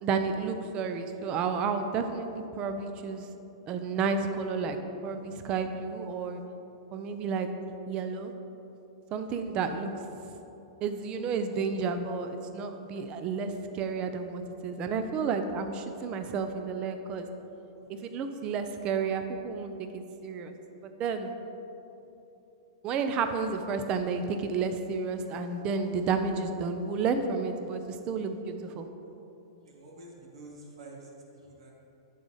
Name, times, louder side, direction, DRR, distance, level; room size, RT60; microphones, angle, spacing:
voice 1, 0.0-3.3 3.7-4.8 5.0-6.4 6.9-7.5 7.9-8.3 9.1-9.9 10.2-10.3 10.8-17.3 17.9-20.5 20.8-21.3 22.8-28.9, right 5 dB, 35° right, 7 dB, 0.6 m, -31 dB
voice 2, 29.6-31.7, right 2 dB, 75° right, -2 dB, 1.8 m, -49 dB
10.5 x 4.0 x 5.6 m, 3.0 s
hypercardioid pair, 125°, 3 cm